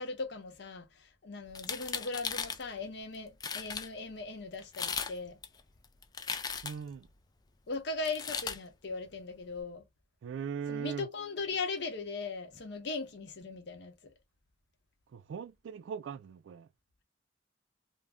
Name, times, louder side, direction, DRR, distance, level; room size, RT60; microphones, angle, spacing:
voice 1, 0.0-5.4 7.7-9.8 10.7-13.9, left 3 dB, 65° left, 0.7 m, -39 dB
sound 1, 1.5-2.6 3.1-3.2 3.4-3.9 4.6-5.1 5.4-6.9 8.0-8.6, left 6 dB, 20° left, 0.3 m, -37 dB
voice 2, 6.6-7.1 10.2-11.1 15.1-16.7, right 7 dB, 80° right, 0.3 m, -39 dB
2.4 x 2.1 x 3.4 m
head